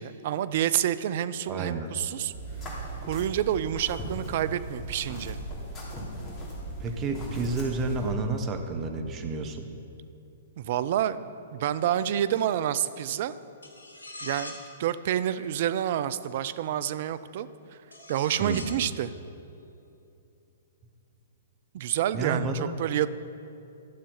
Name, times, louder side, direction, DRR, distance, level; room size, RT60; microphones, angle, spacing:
voice 1, 0.0-2.3 3.1-5.4 10.6-13.3 14.2-17.5 18.1-19.1 21.7-23.1, right 11 dB, 55° right, 15 dB, 0.4 m, -28 dB
voice 2, 1.5-1.9 6.8-9.7 18.4-18.7 22.1-22.7, right 3 dB, 30° right, 6 dB, 1.0 m, -30 dB
sound 1, 2.3-8.1, right 1 dB, 20° left, 2.9 m, -38 dB
sound 2, 13.6-14.7 16.5-16.6 17.9-18.8, left 2 dB, 75° left, 2.4 m, -42 dB
12.0 x 6.8 x 5.5 m, 2.7 s
figure-of-eight pair, 115°, 0 cm